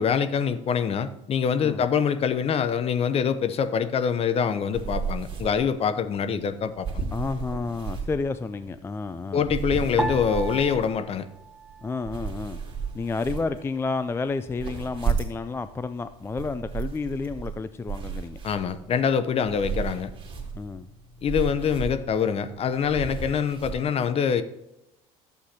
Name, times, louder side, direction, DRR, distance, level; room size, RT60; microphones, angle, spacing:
voice 1, 0.0-7.0 9.3-11.3 18.4-20.1 21.2-24.4, left 7 dB, 40° left, 12 dB, 0.7 m, -25 dB
sound 1, 4.7-23.8, right 6 dB, 35° right, 2.5 m, -35 dB
voice 2, 7.1-9.5 11.8-12.6 12.9-18.4 20.5-20.9, left 4 dB, 15° left, 12 dB, 0.3 m, -31 dB
sound 2, 10.0-12.5 12.8-13.7 14.3-14.7, right 2 dB, 5° right, 0.8 m, -35 dB
11.5 x 8.0 x 2.9 m, 0.88 s
supercardioid pair, 100°, 16 cm